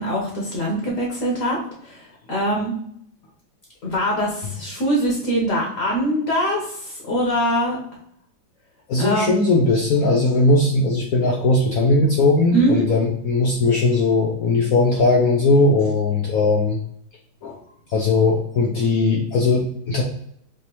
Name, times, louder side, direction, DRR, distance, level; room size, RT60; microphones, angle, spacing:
voice 1, 0.0-1.6 1.8-2.7 3.8-7.8 9.0-9.4 12.5-12.8, equal, 50° left, -2 dB, 1.2 m, -23 dB
voice 2, 8.9-16.8 17.4-17.6 17.9-20.0, left 3 dB, 80° left, 0 dB, 0.7 m, -18 dB
5.0 x 2.8 x 2.9 m, 0.70 s
omnidirectional pair, 2.3 m